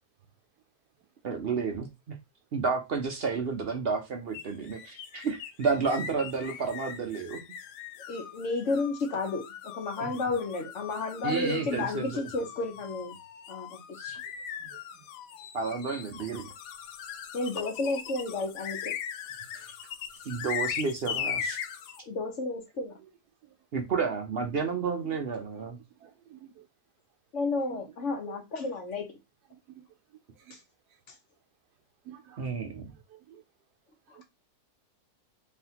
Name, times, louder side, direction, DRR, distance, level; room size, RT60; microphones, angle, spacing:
voice 1, 1.2-2.2 2.5-7.4 10.0-10.2 11.2-12.2 14.0-14.2 15.5-16.5 20.2-21.6 23.7-25.8 32.4-32.9, right 5 dB, 55° right, 0.7 m, -31 dB
sound 1, 4.3-22.0, left 8 dB, 85° left, 1.2 m, -39 dB
voice 2, 8.1-13.2 13.5-14.0 17.3-18.9 19.5-19.7 22.1-23.0 27.3-29.1 30.5-30.6 34.1-34.2, left 3 dB, 55° left, 1.2 m, -32 dB
voice 3, 26.0-26.6 27.7-27.8 28.3-28.4 29.7-29.8 30.4-30.6 32.1-32.8 33.1-33.4 34.2-34.3, right 10 dB, 90° right, 1.2 m, -48 dB
3.8 x 3.5 x 2.8 m
omnidirectional pair, 1.7 m